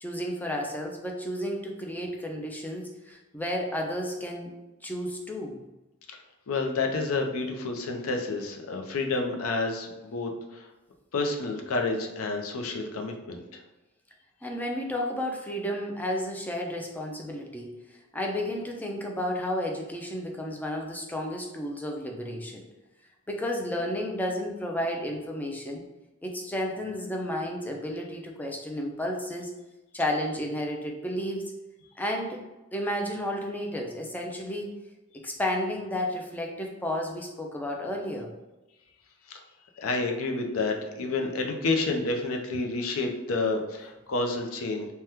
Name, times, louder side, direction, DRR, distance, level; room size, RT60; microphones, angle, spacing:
voice 1, 0.0-4.5 4.8-5.6 14.4-22.6 23.3-25.8 26.2-29.5 29.9-31.4 32.0-32.4 32.7-34.7 35.2-38.3, left 1 dB, 10° left, 1 dB, 0.3 m, -32 dB
voice 2, 6.5-10.7 11.1-13.6 39.3-39.4 39.8-44.9, left 3 dB, 80° left, 3 dB, 0.5 m, -29 dB
2.8 x 2.2 x 3.4 m, 1.1 s
head